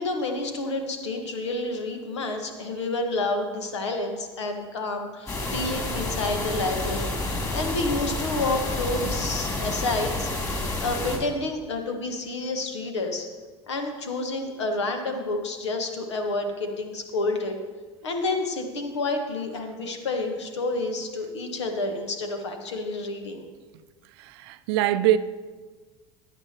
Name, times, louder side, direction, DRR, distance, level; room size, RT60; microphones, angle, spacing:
voice 1, 0.0-7.1 7.5-10.3 10.8-13.3 13.7-17.6 18.0-23.5, left 2 dB, 70° left, 1.5 m, -29 dB
sound 1, 5.3-11.2, left 2 dB, 20° left, 3.2 m, -29 dB
voice 2, 24.2-25.2, right 12 dB, 55° right, 0.6 m, -23 dB
16.0 x 10.5 x 3.0 m
figure-of-eight pair, 70°, 15 cm